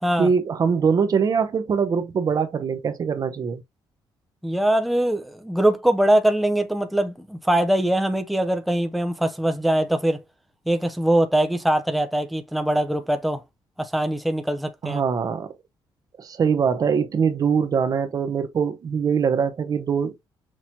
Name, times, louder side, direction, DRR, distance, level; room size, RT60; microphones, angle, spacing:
voice 1, 0.2-3.6 14.8-15.6 16.2-20.1, right 6 dB, 45° right, 0.8 m, -22 dB
voice 2, 4.4-10.2 10.7-13.4 13.8-15.0, right 1 dB, ahead, 0.5 m, -22 dB
6.0 x 2.9 x 2.7 m
cardioid pair, 110°, 9 cm